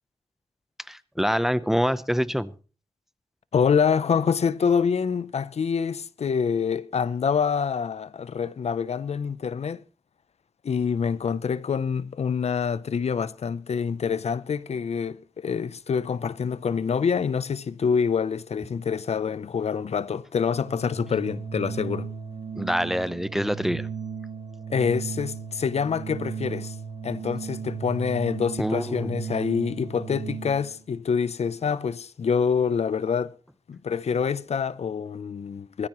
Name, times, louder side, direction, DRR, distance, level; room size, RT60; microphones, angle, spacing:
voice 1, 0.9-2.5 22.5-23.9 28.6-29.2, equal, 5° right, 0.8 m, -25 dB
voice 2, 3.5-9.8 10.6-22.1 24.7-26.7 27.0-33.3 33.7-35.9, left 6 dB, 75° left, 0.6 m, -26 dB
Organ, 20.5-30.8, right 6 dB, 60° right, 5.2 m, -35 dB
21.0 x 13.5 x 3.0 m
wide cardioid pair, 75°, 11 cm